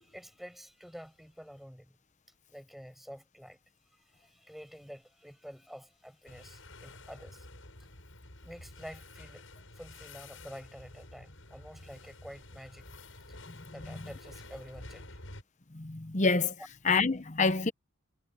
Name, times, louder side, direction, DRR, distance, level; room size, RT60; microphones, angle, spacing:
voice 1, 0.0-2.0 2.5-3.6 3.9-7.5 8.4-9.4 9.7-12.9 13.3-13.4 13.7-15.2, equal, ahead, 6.6 m, -49 dB
sound 1, 6.3-15.4, left 2 dB, 75° left, 7.7 m, -50 dB
voice 2, 15.7-16.5 16.9-17.7, left 4 dB, 35° left, 1.0 m, -27 dB
head